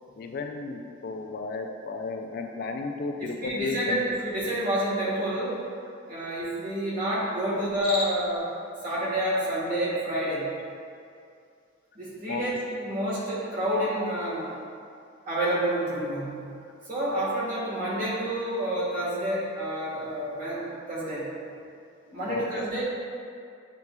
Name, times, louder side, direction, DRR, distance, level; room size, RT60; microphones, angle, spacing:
voice 1, 0.2-4.0 12.3-12.4 22.3-22.7, left 3 dB, 50° left, 3 dB, 0.3 m, -33 dB
voice 2, 3.2-5.6 6.1-8.5 8.8-10.4 11.9-14.5 15.3-16.4 16.9-21.3 22.1-22.8, right 1 dB, 45° right, -7 dB, 1.3 m, -29 dB
Cricket, 7.6-8.4, left 1 dB, 80° left, 1.2 m, -34 dB
7.8 x 3.0 x 2.2 m, 2.4 s
head